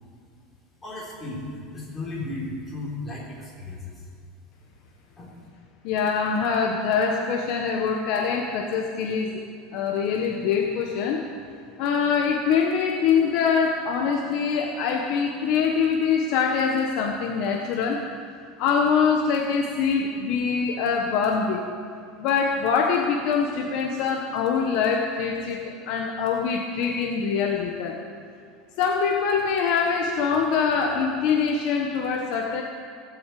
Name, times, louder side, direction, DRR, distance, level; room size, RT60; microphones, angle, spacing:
voice 1, 0.8-4.1 5.2-5.3, left 2 dB, 10° left, -6 dB, 3.7 m, -35 dB
voice 2, 5.8-9.4 9.7-11.2 11.8-18.0 18.6-21.7 22.2-28.0 28.8-32.6, left 6 dB, 45° left, 1 dB, 1.1 m, -24 dB
16.0 x 8.0 x 8.4 m, 2.3 s
supercardioid pair, 180°, 0 cm